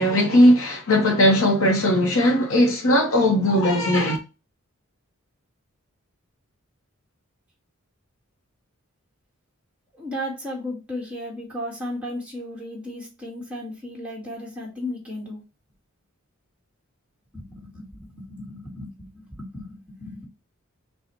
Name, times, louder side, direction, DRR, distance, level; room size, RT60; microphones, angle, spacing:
voice 1, 0.0-4.2, left 1 dB, 80° left, 1.2 m, -18 dB
voice 2, 9.9-15.4 17.3-20.3, left 1 dB, 5° right, 1.8 m, -35 dB
6.3 x 2.4 x 3.1 m
head